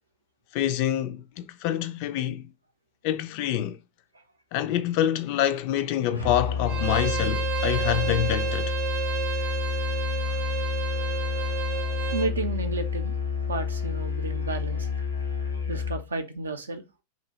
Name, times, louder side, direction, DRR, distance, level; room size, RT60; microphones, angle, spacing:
voice 1, 0.5-2.5 3.0-3.8 4.5-8.7, left 11 dB, 45° left, 0.3 m, -26 dB
Musical instrument, 6.1-16.1, left 6 dB, 90° left, 0.7 m, -29 dB
Bowed string instrument, 6.7-12.3, right 10 dB, 35° right, 0.7 m, -31 dB
voice 2, 12.1-13.2 13.5-14.9 15.7-16.8, right 3 dB, 75° right, 0.5 m, -32 dB
2.8 x 2.6 x 2.8 m
figure-of-eight pair, 90°, 0 cm